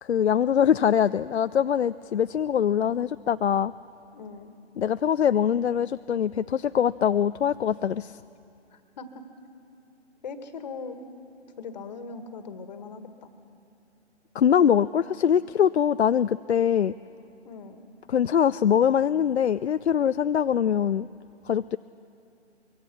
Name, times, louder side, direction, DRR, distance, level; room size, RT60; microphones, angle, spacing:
voice 1, 0.0-3.7 4.8-8.2 14.3-16.9 18.1-21.1 21.5-21.8, left 8 dB, 70° left, 14 dB, 0.5 m, -23 dB
voice 2, 4.1-4.5 8.7-9.2 10.2-11.0 11.6-13.3 17.4-17.9, left 4 dB, 40° left, 8 dB, 1.7 m, -40 dB
24.5 x 22.5 x 6.1 m, 2.7 s
figure-of-eight pair, 140°, 34 cm